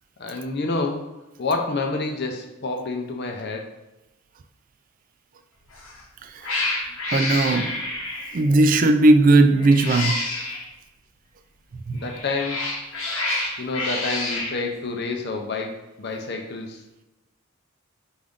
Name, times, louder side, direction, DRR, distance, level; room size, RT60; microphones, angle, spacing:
voice 1, 0.2-1.0 1.4-3.7 11.9-12.6 13.6-16.8, left 3 dB, 50° left, 3 dB, 0.6 m, -28 dB
Cat, 5.7-6.0 6.4-8.5 9.6-10.7 12.0-14.6, left 2 dB, 75° left, 0.9 m, -28 dB
voice 2, 6.4-6.7 7.1-7.8 8.3-10.2 11.9-12.0, right 2 dB, 40° right, 8 dB, 0.3 m, -17 dB
4.9 x 2.6 x 3.5 m, 1.0 s
head